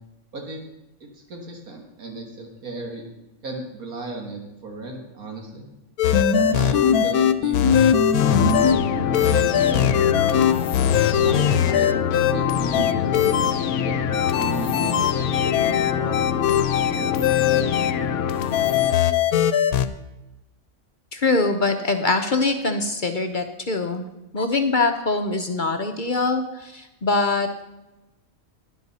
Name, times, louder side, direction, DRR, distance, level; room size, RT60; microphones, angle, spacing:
voice 1, 0.3-0.6 1.3-3.0 3.4-5.6 6.4-10.5 11.2-14.0 14.3-15.1 15.6-16.4, right 3 dB, 75° right, 1 dB, 2.1 m, -35 dB
sound 1, 6.0-8.7 9.1-12.3 12.7-13.5 14.1-17.9 18.5-19.9, left 8 dB, 85° left, 1.2 m, -20 dB
sound 2, 8.2-18.9, left 8 dB, 65° left, 0.9 m, -24 dB
voice 2, 21.1-24.1 24.3-27.6, left 3 dB, 45° left, 6 dB, 0.6 m, -23 dB
12.0 x 10.5 x 4.1 m, 0.97 s
omnidirectional pair, 1.5 m